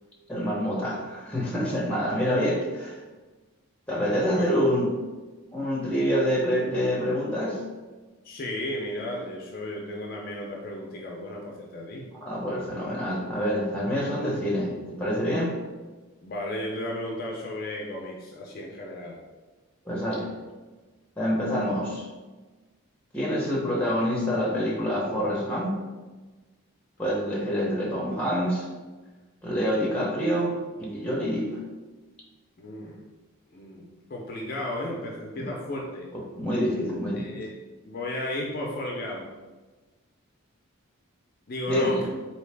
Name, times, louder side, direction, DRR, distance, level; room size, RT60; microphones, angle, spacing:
voice 1, 0.3-3.0 3.9-4.9 5.5-7.6 12.2-15.6 19.8-20.4 21.2-22.1 23.1-25.8 27.0-28.7 29.4-31.6 36.1-37.4 41.7-42.1, equal, 5° left, -4 dB, 0.7 m, -26 dB
voice 2, 8.2-12.1 16.2-19.2 32.6-33.0 33.5-36.1 37.2-37.5 37.8-39.3 41.5-42.1, left 1 dB, 45° left, -1 dB, 0.4 m, -34 dB
3.8 x 2.8 x 3.3 m, 1.3 s
head